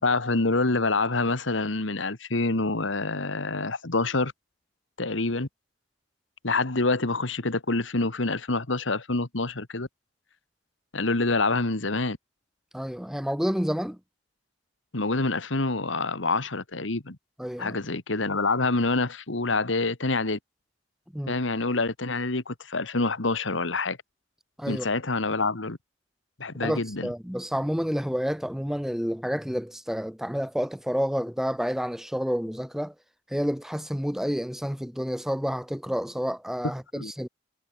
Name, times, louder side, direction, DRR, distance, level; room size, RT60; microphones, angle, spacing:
voice 1, 0.0-4.3 5.0-5.5 6.4-9.9 10.9-12.2 14.9-17.2 17.6-20.4 21.3-24.0 24.7-25.8 26.4-27.1 36.9-37.1, left 3 dB, 90° left, 1.9 m, -26 dB
voice 2, 12.7-14.0 17.4-17.8 21.1-21.4 24.6-24.9 26.6-32.9 33.3-37.3, equal, ahead, 0.9 m, -29 dB
head